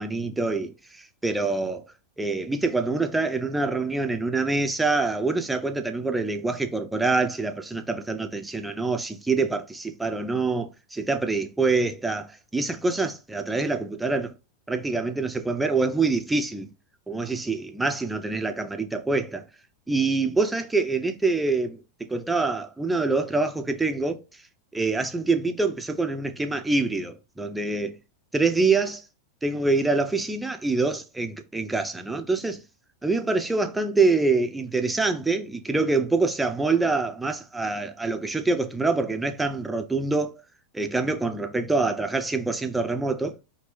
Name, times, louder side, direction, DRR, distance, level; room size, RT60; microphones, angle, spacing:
voice 1, 0.0-1.8 2.2-14.3 14.7-16.7 17.1-19.4 19.9-21.8 22.1-24.2 24.7-27.9 28.3-29.0 29.4-32.6 33.0-40.4 40.7-43.4, right 3 dB, 5° right, 0.5 m, -25 dB
3.0 x 2.9 x 4.5 m
figure-of-eight pair, 90°, 0 cm